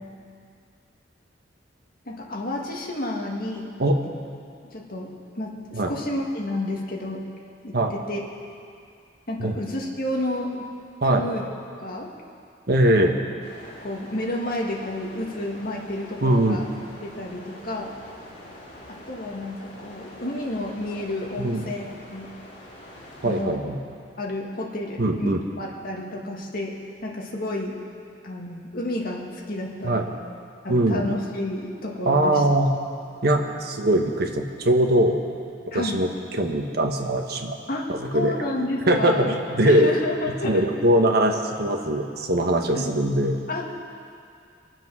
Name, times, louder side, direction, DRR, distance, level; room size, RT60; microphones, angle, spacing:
voice 1, 2.1-3.7 4.7-7.2 7.6-8.2 9.3-10.7 11.0-11.4 11.8-12.1 13.0-13.1 13.8-16.7 17.0-17.9 18.9-22.3 23.2-23.6 24.2-26.7 27.0-27.8 28.2-30.1 30.6-32.4 35.7-36.0 37.7-39.3 39.6-40.6 42.7-42.9 43.5-43.8, left 1 dB, 55° left, -1 dB, 2.0 m, -30 dB
voice 2, 12.7-13.2 16.2-16.6 21.4-21.6 23.2-23.8 25.0-25.4 29.8-30.0 30.7-31.1 32.0-32.7 33.2-35.2 35.7-36.1 36.4-37.6 37.9-38.3 38.9-39.9 40.4-43.4, right 1 dB, 60° right, 3 dB, 1.3 m, -21 dB
sound 1, 13.4-23.4, left 1 dB, 40° left, 2.9 m, -45 dB
23.5 x 7.8 x 6.2 m, 2.4 s
head